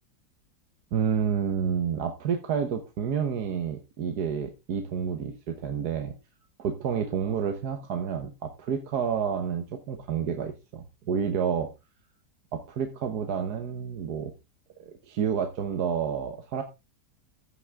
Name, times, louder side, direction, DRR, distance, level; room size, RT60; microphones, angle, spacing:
voice 1, 0.9-6.1 6.6-11.7 12.5-14.3 14.8-16.6, right 7 dB, 70° right, 6 dB, 1.5 m, -29 dB
15.0 x 6.1 x 3.5 m, 0.24 s
omnidirectional pair, 1.8 m